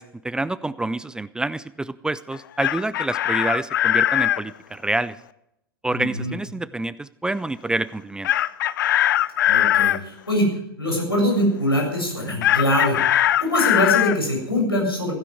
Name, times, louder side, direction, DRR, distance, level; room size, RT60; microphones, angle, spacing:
voice 1, 0.0-5.2 5.8-8.3, right 2 dB, 5° right, 17 dB, 0.5 m, -27 dB
Chicken rooster, 2.3-4.4 8.2-10.0 12.4-14.2, left 12 dB, 60° left, 0.6 m, -20 dB
voice 2, 5.9-6.3 9.5-10.5 10.8-13.0 13.4-15.1, left 1 dB, 85° left, 1 dB, 7.4 m, -23 dB
16.0 x 16.0 x 4.9 m, 0.78 s
figure-of-eight pair, 95°, 12 cm